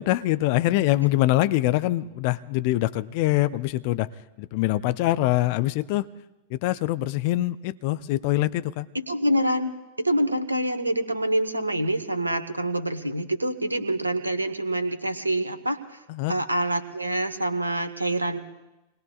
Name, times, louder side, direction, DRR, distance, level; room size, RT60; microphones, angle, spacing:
voice 1, 0.0-4.1 4.4-6.1 6.5-8.9 16.1-16.3, left 16 dB, 45° left, 14 dB, 0.5 m, -24 dB
voice 2, 8.9-16.0 16.3-18.4, right 1 dB, 85° right, 10 dB, 1.1 m, -26 dB
27.5 x 20.5 x 2.4 m, 1.0 s
figure-of-eight pair, 90°, 0 cm